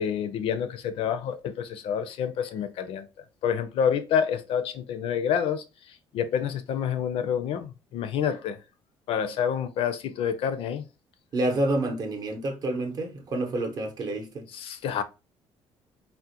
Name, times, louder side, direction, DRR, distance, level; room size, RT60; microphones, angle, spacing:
voice 1, 0.0-3.1 3.4-5.6 6.1-8.6 9.1-10.8 14.5-15.0, left 8 dB, 65° left, 0.4 m, -28 dB
voice 2, 11.3-14.5, right 1 dB, 40° right, 0.7 m, -28 dB
3.6 x 2.1 x 2.7 m
cardioid pair, 150°, 10 cm